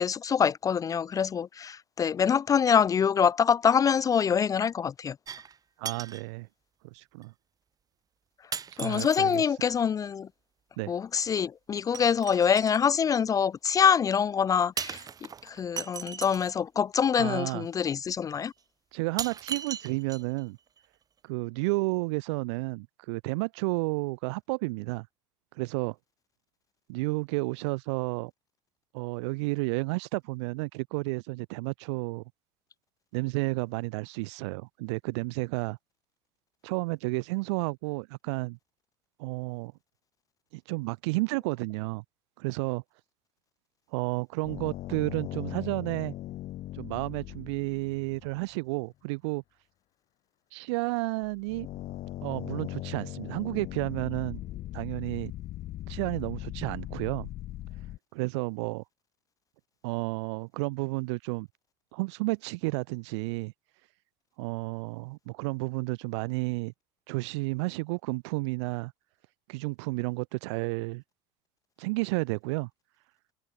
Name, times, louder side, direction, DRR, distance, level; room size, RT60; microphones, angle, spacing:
voice 1, 0.0-5.1 8.8-10.3 10.9-15.0 15.5-18.5, left 7 dB, 25° left, 0.5 m, -25 dB
sound 1, 5.3-5.6 5.8-6.3 7.2-7.3 8.5-9.4 11.9-12.8 14.8-16.5 17.7-17.8 18.3-18.4 19.2-20.4 20.8-20.9, right 7 dB, 25° right, 2.3 m, -38 dB
voice 2, 5.8-6.5 6.8-7.3 8.7-9.6 10.8-10.9 17.1-17.7 18.9-20.6 21.2-25.1 25.5-26.0 26.9-28.3 28.9-32.2 33.1-35.8 36.6-38.6 39.2-39.7 40.5-42.0 42.4-42.8 43.9-46.1 46.7-49.4 50.5-51.7 52.2-54.4 54.7-55.3 55.9-57.3 57.8-57.9 58.1-58.8 59.8-61.5 61.9-63.5 64.4-66.7 67.1-68.9 69.5-71.0 71.8-72.7, right 26 dB, 90° right, 1.6 m, -31 dB
sound 2, 44.4-48.5 51.2-58.0, left 15 dB, 50° left, 4.9 m, -39 dB
cardioid pair, 135°, 14 cm